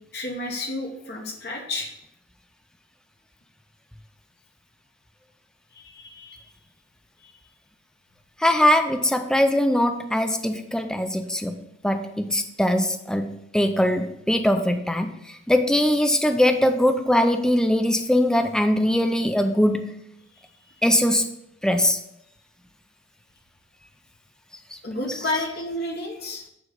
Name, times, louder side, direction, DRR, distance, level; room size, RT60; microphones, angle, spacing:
voice 1, 0.1-1.9 5.7-6.4 7.2-7.3 20.4-20.5 24.8-26.4, left 2 dB, 60° left, 1 dB, 1.1 m, -31 dB
voice 2, 8.4-11.6 11.8-20.0 20.8-21.3 21.6-22.0 24.7-24.8 25.1-25.2, left 1 dB, 5° left, 7 dB, 0.4 m, -21 dB
9.1 x 3.8 x 5.2 m, 0.81 s
head